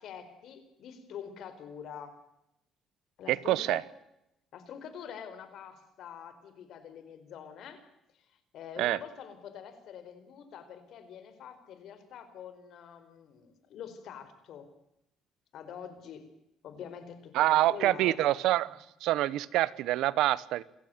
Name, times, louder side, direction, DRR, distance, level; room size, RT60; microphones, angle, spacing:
voice 1, 0.0-2.2 3.2-3.8 4.5-7.8 8.3-14.7 15.5-16.3 16.6-18.3, left 8 dB, 65° left, 11 dB, 4.6 m, -45 dB
voice 2, 3.3-3.8 8.8-9.0 17.3-18.7 19.0-20.6, right 15 dB, 85° right, 20 dB, 1.0 m, -26 dB
28.0 x 15.5 x 9.2 m, 0.85 s
cardioid pair, 140°, 0 cm